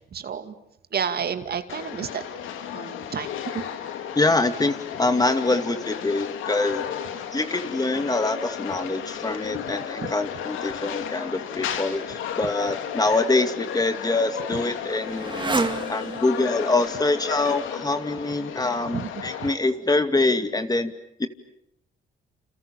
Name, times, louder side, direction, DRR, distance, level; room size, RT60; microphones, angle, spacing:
voice 1, 0.1-0.5 0.9-2.2 2.7-3.6 10.0-10.1 18.9-19.1, right 7 dB, 55° right, 9 dB, 2.4 m, -30 dB
sound 1, 1.7-19.5, left 9 dB, 85° left, 2.7 m, -34 dB
voice 2, 4.1-6.9 7.3-20.9 21.2-21.3, left 2 dB, 20° left, 8 dB, 2.3 m, -25 dB
Motorcycle, 13.4-18.8, right 3 dB, 25° right, 2.4 m, -33 dB
29.5 x 28.5 x 7.1 m, 0.77 s
cardioid pair, 90°, 20 cm